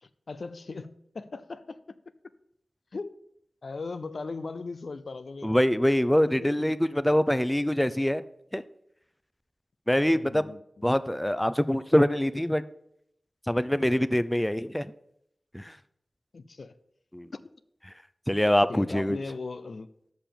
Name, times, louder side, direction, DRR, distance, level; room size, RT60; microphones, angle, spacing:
voice 1, 0.0-1.8 2.9-3.2 3.6-5.5 6.3-6.7 10.1-10.6 16.3-16.8 18.7-19.9, left 3 dB, 75° left, 0.4 m, -38 dB
voice 2, 5.4-8.2 8.5-8.6 9.9-10.5 10.8-12.6 13.5-14.9 15.5-15.7 17.1-17.3 18.3-19.2, equal, 10° left, 0.5 m, -24 dB
6.9 x 5.8 x 6.9 m
cardioid pair, 50°, 0 cm